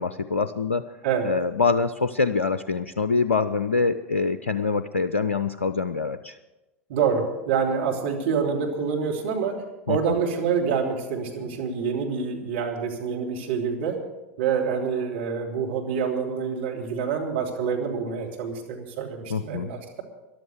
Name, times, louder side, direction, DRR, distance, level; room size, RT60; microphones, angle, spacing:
voice 1, 0.0-0.8 1.2-6.4 9.9-10.0 19.3-19.7, left 4 dB, 80° left, 12 dB, 0.5 m, -25 dB
voice 2, 6.9-9.6 9.9-14.0 14.4-20.0, right 6 dB, 60° right, 0 dB, 3.0 m, -26 dB
14.0 x 11.5 x 6.7 m, 1.0 s
figure-of-eight pair, 85°, 7 cm